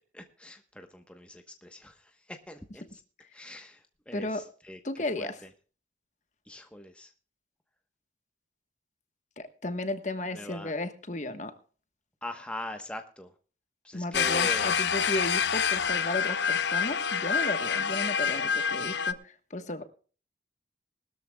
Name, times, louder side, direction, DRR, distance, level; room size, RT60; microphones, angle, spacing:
voice 1, 0.1-3.0 3.3-5.5 6.4-7.1 10.3-10.7 12.2-13.3 13.8-14.7, left 1 dB, 5° left, 5 dB, 1.0 m, -42 dB
voice 2, 4.1-4.4 4.8-5.3 9.4-11.5 13.9-19.8, left 2 dB, 40° left, 9 dB, 1.2 m, -34 dB
sound 1, 14.1-19.1, left 6 dB, 70° left, 0.7 m, -27 dB
20.5 x 13.0 x 2.3 m, 0.39 s
head